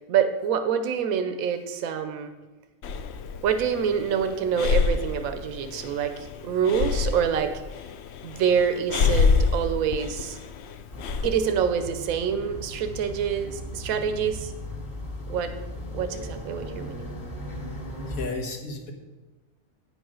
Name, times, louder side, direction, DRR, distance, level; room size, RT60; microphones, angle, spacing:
voice 1, 0.1-2.3 3.4-7.5 8.2-10.4 11.2-14.5 15.3-15.5 15.9-17.1, right 7 dB, 85° right, 8 dB, 1.1 m, -26 dB
Breathing, 2.8-11.3, left 5 dB, 60° left, 0.8 m, -27 dB
sound 1, 10.9-18.3, equal, 40° left, 2.1 m, -37 dB
voice 2, 18.1-18.9, left 2 dB, 90° left, 1 dB, 1.8 m, -33 dB
9.1 x 5.5 x 6.2 m, 1.2 s
omnidirectional pair, 1.4 m